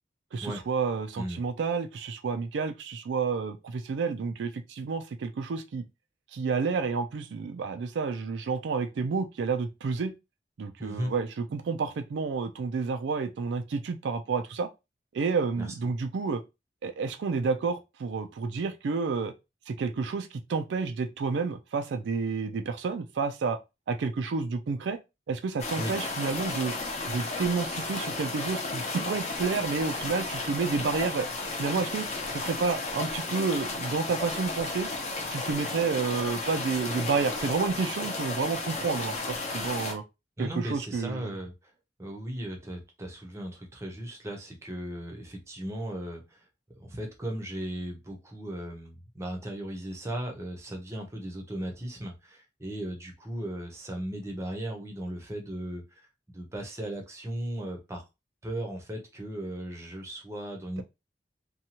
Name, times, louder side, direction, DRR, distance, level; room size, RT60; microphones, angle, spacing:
voice 1, 0.3-5.8 6.3-10.1 10.6-14.7 15.1-16.4 16.8-19.3 19.7-23.6 23.9-25.0 25.3-26.7 27.1-31.3 31.6-32.1 32.3-34.9 35.3-40.0 40.4-41.3, right 5 dB, 80° right, 0.4 m, -30 dB
voice 2, 10.8-11.1 15.6-15.7 25.8-26.0 40.4-41.7 42.0-46.5 46.8-58.0 58.4-60.8, right 1 dB, 15° right, 0.6 m, -37 dB
sound 1, 25.6-39.9, left 3 dB, 40° left, 0.6 m, -33 dB
2.7 x 2.3 x 2.8 m
head